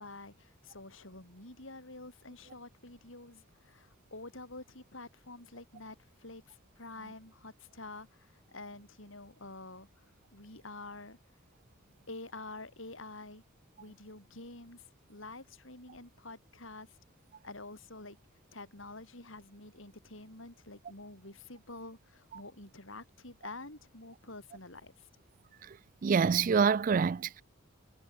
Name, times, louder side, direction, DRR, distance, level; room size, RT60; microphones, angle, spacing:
voice 1, 0.0-11.2 12.1-13.4 13.8-17.0 17.4-18.2 18.5-25.1, left 2 dB, 70° left, 5.5 m, -48 dB
voice 2, 26.0-27.4, right 6 dB, 40° right, 0.3 m, -26 dB
head